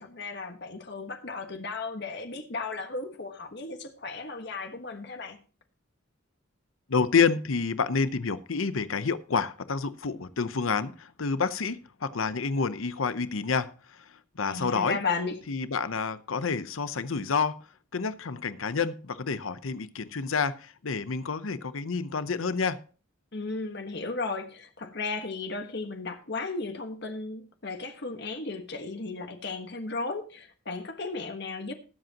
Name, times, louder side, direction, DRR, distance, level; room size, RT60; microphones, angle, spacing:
voice 1, 0.0-5.4 14.4-15.4 23.3-31.7, left 3 dB, 55° left, 1.4 m, -35 dB
voice 2, 6.9-15.0 15.5-17.7 17.9-22.8, left 5 dB, 80° left, 0.8 m, -29 dB
20.0 x 7.8 x 2.9 m
head